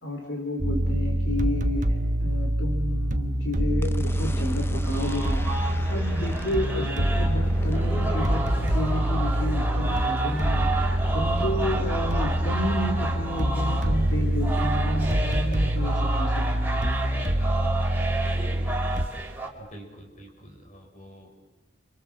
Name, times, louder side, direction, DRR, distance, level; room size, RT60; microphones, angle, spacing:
voice 1, 0.0-5.6 5.9-17.0, left 1 dB, 65° left, 2 dB, 3.4 m, -31 dB
sound 1, 0.6-19.1, right 1 dB, 40° right, 1.2 m, -25 dB
sound 2, 3.8-17.1, left 1 dB, 10° left, 0.9 m, -36 dB
sound 3, 4.8-19.5, right 2 dB, 10° right, 4.3 m, -32 dB
voice 2, 19.6-21.4, right 1 dB, 40° left, 3 dB, 5.9 m, -47 dB
29.0 x 27.5 x 7.4 m, 0.98 s
head